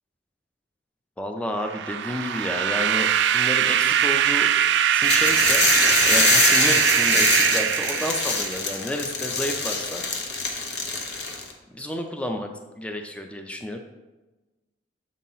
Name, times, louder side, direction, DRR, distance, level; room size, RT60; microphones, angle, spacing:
voice 1, 1.2-3.1 3.3-4.5 4.9-5.6 6.0-10.0 11.7-12.5 12.8-13.8, left 1 dB, 5° left, 4 dB, 0.4 m, -30 dB
sound 1, 1.7-8.7, right 9 dB, 70° right, 0.3 m, -22 dB
sound 2, 5.0-11.5, left 4 dB, 65° left, 0.8 m, -24 dB
7.3 x 2.8 x 5.5 m, 1.1 s
head